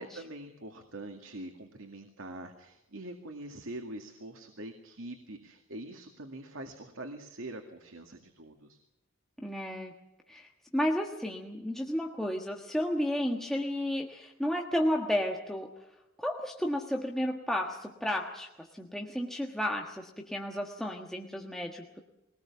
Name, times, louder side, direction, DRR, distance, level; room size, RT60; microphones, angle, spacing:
voice 1, 0.0-8.8, right 1 dB, 85° right, 5 dB, 2.1 m, -44 dB
voice 2, 9.4-9.9 10.3-15.7 16.2-22.0, equal, ahead, 0 dB, 1.4 m, -32 dB
22.5 x 19.0 x 7.2 m, 0.92 s
head